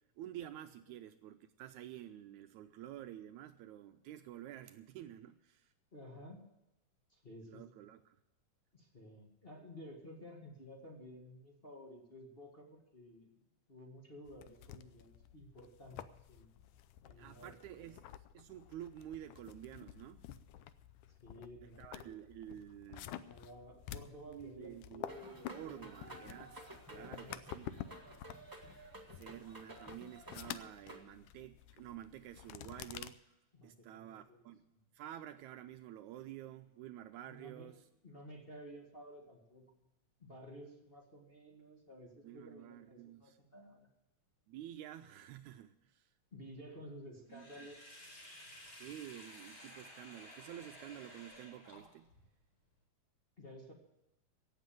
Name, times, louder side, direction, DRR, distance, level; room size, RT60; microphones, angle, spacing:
voice 1, 0.2-5.7 7.5-8.2 17.2-20.3 21.8-23.1 24.3-25.1 25.5-27.3 27.5-27.8 29.1-33.2 33.6-34.7 34.9-37.8 42.2-43.4 44.5-46.1 47.3-47.7 48.7-52.1, right 12 dB, 80° right, 9 dB, 1.8 m, -50 dB
voice 2, 5.9-6.5 7.1-7.6 8.7-13.4 13.7-16.0 16.3-16.5 17.0-17.5 21.2-22.2 22.5-22.6 23.1-26.2 26.9-27.4 33.5-34.4 34.7-34.8 37.3-37.7 38.0-39.9 40.2-43.9 46.3-47.9 53.4-53.7, equal, 20° left, -2 dB, 1.7 m, -53 dB
sound 1, 14.3-33.1, left 11 dB, 80° left, 2.1 m, -51 dB
sound 2, 25.1-31.1, right 1 dB, 20° right, 0.5 m, -53 dB
Sink (filling or washing), 47.3-52.2, equal, 40° left, 5.3 m, -54 dB
17.0 x 7.5 x 7.7 m, 0.91 s
omnidirectional pair, 3.6 m